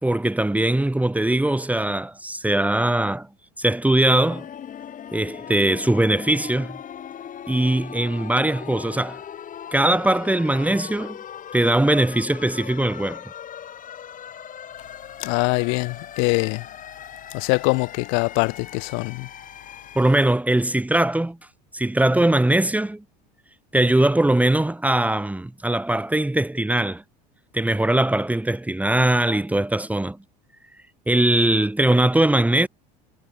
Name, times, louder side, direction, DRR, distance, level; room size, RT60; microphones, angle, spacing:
voice 1, 0.0-3.3 3.6-4.5 5.1-6.8 7.5-9.2 9.7-11.2 11.5-13.3 19.9-21.4 21.7-23.0 23.7-27.0 27.5-30.2 31.1-32.7, right 1 dB, 5° right, 2.6 m, -21 dB
sound 1, 4.2-20.2, left 9 dB, 40° left, 5.5 m, -39 dB
voice 2, 15.2-16.7 17.3-19.3, left 34 dB, 70° left, 6.6 m, -23 dB
hypercardioid pair, 85°, 21 cm